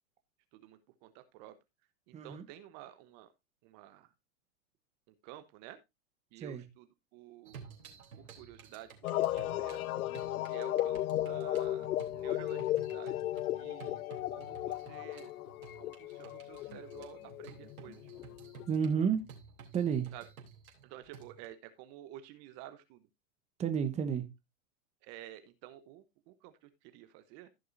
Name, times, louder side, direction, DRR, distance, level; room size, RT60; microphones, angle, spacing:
voice 1, 0.5-1.5 2.1-3.3 3.6-4.1 5.2-5.8 6.3-6.9 7.1-7.6 8.2-9.8 10.5-11.9 12.1-15.3 15.8-18.0 20.1-20.3 20.8-23.1 25.0-27.5, right 13 dB, 40° right, 1.0 m, -51 dB
voice 2, 2.1-2.4 6.4-6.6 18.7-19.2 19.7-20.1 23.6-24.3, right 7 dB, 15° right, 1.1 m, -31 dB
sound 1, 7.4-21.5, right 6 dB, 85° right, 3.5 m, -54 dB
sound 2, 9.0-19.0, left 14 dB, 85° left, 0.5 m, -35 dB
15.5 x 6.5 x 2.6 m
hypercardioid pair, 125°, 42 cm